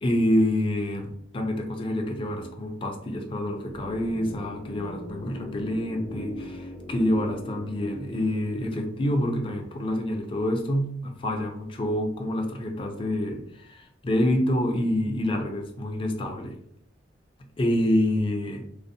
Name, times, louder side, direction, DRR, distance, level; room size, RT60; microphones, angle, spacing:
voice 1, 0.0-16.6 17.6-18.6, left 1 dB, 30° left, 3 dB, 0.3 m, -27 dB
sound 1, 3.7-9.7 10.0-10.1, left 1 dB, 70° left, 0.6 m, -41 dB
2.5 x 2.0 x 2.5 m, 0.68 s
head